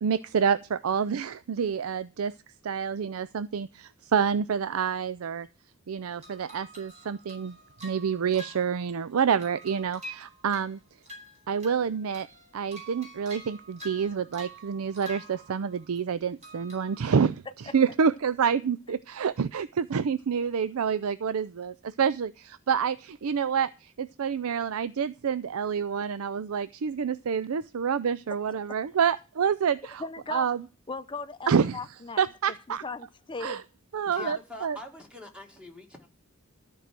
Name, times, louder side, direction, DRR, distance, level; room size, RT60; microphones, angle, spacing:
voice 1, 0.0-2.3 2.6-5.5 5.9-7.5 7.8-10.8 11.5-12.3 12.5-30.0 30.3-30.6 31.5-31.8 32.2-32.8 33.4-33.6 33.9-34.8, right 7 dB, 85° right, 0.4 m, -28 dB
sound 1, 6.2-9.1 9.4-11.9 12.1-16.0 16.4-17.0, right 1 dB, 30° right, 4.7 m, -47 dB
voice 2, 30.0-30.5 30.9-32.2 32.7-33.6 34.1-34.4, left 3 dB, 25° left, 0.6 m, -37 dB
voice 3, 34.1-36.1, left 1 dB, 5° right, 1.9 m, -44 dB
13.5 x 4.8 x 7.4 m
head